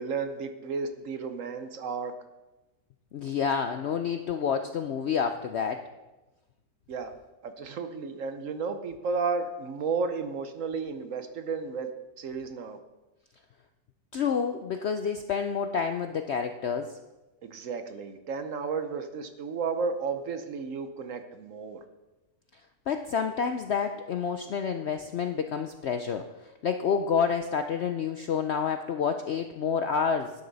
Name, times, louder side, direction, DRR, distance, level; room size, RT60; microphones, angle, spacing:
voice 1, 0.0-2.1 6.9-7.1 7.4-11.9 12.2-12.8 17.4-21.8, right 5 dB, 60° right, 8 dB, 1.0 m, -33 dB
voice 2, 3.1-5.8 14.1-17.0 22.9-26.3 26.6-30.3, left 6 dB, 65° left, 7 dB, 0.6 m, -29 dB
11.5 x 9.7 x 4.0 m, 1.1 s
omnidirectional pair, 1.7 m